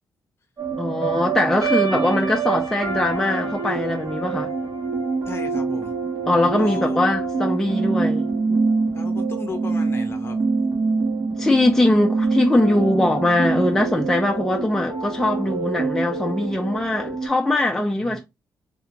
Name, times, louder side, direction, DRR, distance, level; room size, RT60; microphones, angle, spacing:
sound 1, 0.6-17.3, right 4 dB, 55° right, 1.5 m, -25 dB
voice 1, 0.8-4.5 6.3-8.6 11.4-18.2, left 1 dB, 5° left, 0.5 m, -21 dB
voice 2, 5.3-5.9 6.6-7.1 8.9-10.4 18.0-18.2, left 4 dB, 35° left, 0.8 m, -35 dB
3.3 x 2.4 x 2.9 m
cardioid pair, 140°, 7 cm